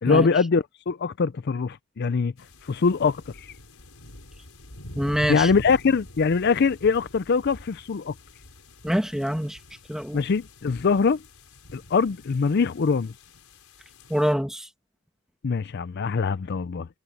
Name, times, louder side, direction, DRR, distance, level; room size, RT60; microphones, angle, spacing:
voice 1, 0.0-2.3 2.6-3.5 5.3-8.1 10.1-11.2 11.7-13.1 15.4-16.9, left 5 dB, 50° left, 0.4 m, -23 dB
sound 1, 2.4-14.3, left 1 dB, 80° left, 5.1 m, -45 dB
voice 2, 4.9-5.5 8.8-9.6 9.9-10.3 14.1-14.7, equal, ahead, 1.5 m, -25 dB
head